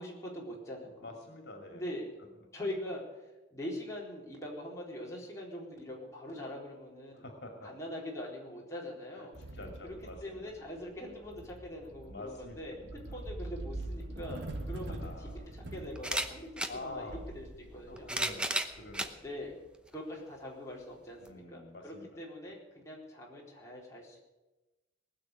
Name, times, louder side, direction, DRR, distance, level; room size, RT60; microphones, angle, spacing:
voice 1, 0.0-1.2 1.7-2.1 2.5-7.3 7.6-9.3 9.8-10.0 10.2-17.4 17.7-18.1 19.2-19.5 19.9-24.2, left 1 dB, 15° left, -4 dB, 4.1 m, -43 dB
voice 2, 1.0-1.8 7.1-7.7 9.1-9.2 9.5-10.5 12.1-12.6 13.1-13.2 14.9-15.5 16.7-17.2 17.9-19.2 21.2-22.2, left 2 dB, 65° left, 3 dB, 2.6 m, -46 dB
sound 1, 9.3-19.5, right 1 dB, 70° right, 1.6 m, -44 dB
sound 2, 14.6-14.7 16.0-16.8 17.8-19.1 19.9-20.0 21.3-21.4, right 1 dB, 5° right, 0.8 m, -33 dB
19.5 x 7.0 x 9.8 m, 1.1 s
head